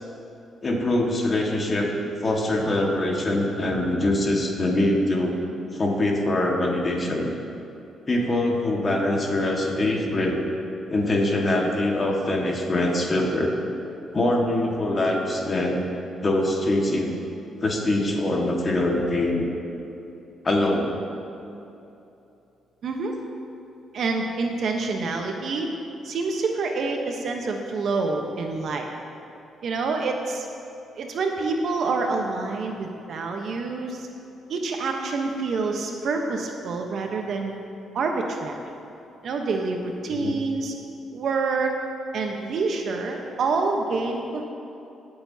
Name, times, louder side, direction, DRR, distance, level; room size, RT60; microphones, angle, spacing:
voice 1, 0.6-1.9 2.2-5.4 5.7-7.3 8.1-10.4 10.9-13.5 14.1-15.8 16.2-17.1 17.6-19.5 20.4-21.0 40.1-40.4, left 1 dB, 35° left, 0 dB, 1.7 m, -23 dB
voice 2, 22.8-23.1 23.9-25.7 26.0-28.9 29.6-30.5 30.9-34.1 34.5-37.5 37.9-38.6 39.2-40.7 41.1-41.7 42.1-44.4, right 3 dB, 60° right, 3 dB, 1.0 m, -27 dB
19.5 x 6.9 x 2.8 m, 2.9 s
cardioid pair, 90°, 0 cm